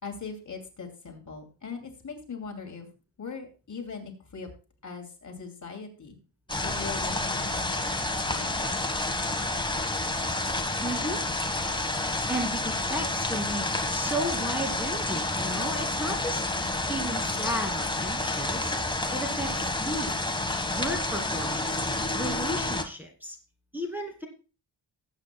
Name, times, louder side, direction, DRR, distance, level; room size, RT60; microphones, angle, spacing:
voice 1, 0.0-2.9 3.2-4.5 4.8-6.2 6.6-8.6, left 5 dB, 40° left, 3 dB, 2.7 m, -40 dB
sound 1, 6.5-22.8, left 2 dB, 10° left, 1.3 m, -29 dB
voice 2, 10.8-11.2 12.3-13.6 13.9-16.4 16.9-18.7 19.1-20.1 20.7-21.9 22.1-23.4 23.7-24.3, equal, 5° right, 0 dB, 2.3 m, -34 dB
19.0 x 8.5 x 2.2 m, 0.34 s
wide cardioid pair, 120°, 43 cm